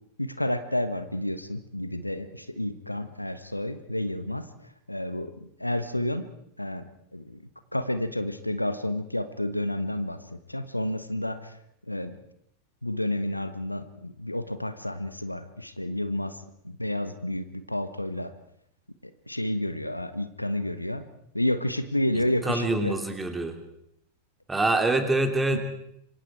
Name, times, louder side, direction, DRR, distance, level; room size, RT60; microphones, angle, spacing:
voice 1, 0.2-4.5 4.9-5.3 5.6-6.2 6.6-6.8 7.1-7.4 7.7-11.5 11.9-12.1 12.8-16.4 16.6-18.3 19.3-21.0 21.3-22.9 25.5-25.6, left 1 dB, 85° left, 11 dB, 1.3 m, -30 dB
voice 2, 22.1-23.6 24.5-25.6, right 2 dB, 10° right, 6 dB, 3.0 m, -25 dB
26.5 x 24.5 x 4.7 m, 0.74 s
figure-of-eight pair, 90°, 0 cm